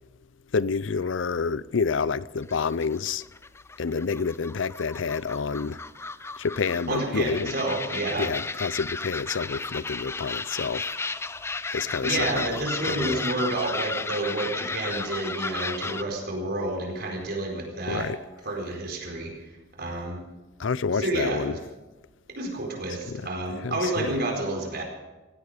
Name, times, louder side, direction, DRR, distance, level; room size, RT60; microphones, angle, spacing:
voice 1, 0.5-3.2 3.8-5.8 6.4-7.5 8.2-10.9 11.7-12.6 12.9-13.2 17.9-18.2 20.6-21.6 23.1-23.3 23.6-24.1, left 5 dB, 90° left, 0.6 m, -28 dB
sound 1, 2.4-16.0, left 3 dB, 15° left, 0.5 m, -34 dB
voice 2, 6.9-8.3 12.0-18.1 18.4-19.3 19.8-20.2 20.9-21.6 22.3-24.8, right 2 dB, 55° right, 4.6 m, -29 dB
17.0 x 16.5 x 5.1 m
head